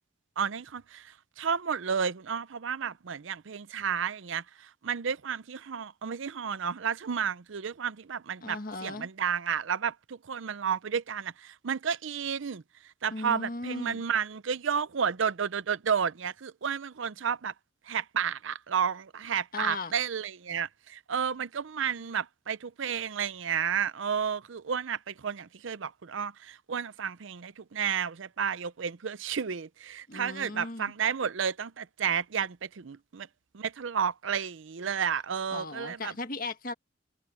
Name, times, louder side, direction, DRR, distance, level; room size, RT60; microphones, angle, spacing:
voice 1, 0.4-12.6 13.0-17.5 17.9-33.3 33.5-36.1, right 7 dB, 70° right, 0.6 m, -32 dB
voice 2, 8.4-9.1 13.1-14.0 19.5-19.9 30.1-30.9 35.5-36.7, left 3 dB, 45° left, 1.6 m, -37 dB
head